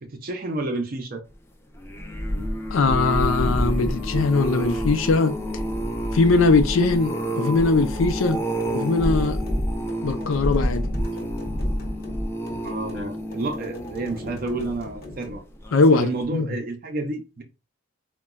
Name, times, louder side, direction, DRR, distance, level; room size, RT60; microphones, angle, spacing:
voice 1, 0.0-1.2 12.6-15.4 15.9-17.4, right 2 dB, 45° right, 0.5 m, -30 dB
sound 1, 1.7-15.1 15.6-16.0 16.2-16.3, equal, 15° left, 0.4 m, -28 dB
voice 2, 2.7-5.3 6.1-8.4 8.7-9.4 10.0-10.8 15.7-16.5, left 3 dB, 90° left, 0.5 m, -20 dB
sound 2, 8.6-15.4, left 1 dB, 50° left, 0.9 m, -42 dB
3.9 x 2.2 x 2.3 m
head